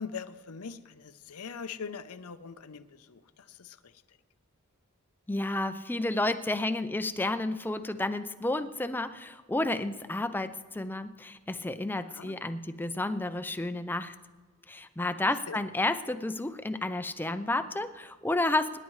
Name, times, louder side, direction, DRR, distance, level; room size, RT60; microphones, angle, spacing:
voice 1, 0.0-3.2 3.6-3.8 12.1-12.3 15.5-15.6, left 6 dB, 85° left, 12 dB, 0.7 m, -41 dB
voice 2, 5.3-14.1 14.7-18.8, left 2 dB, 10° left, 10 dB, 0.4 m, -31 dB
26.0 x 11.0 x 3.2 m, 1.4 s
head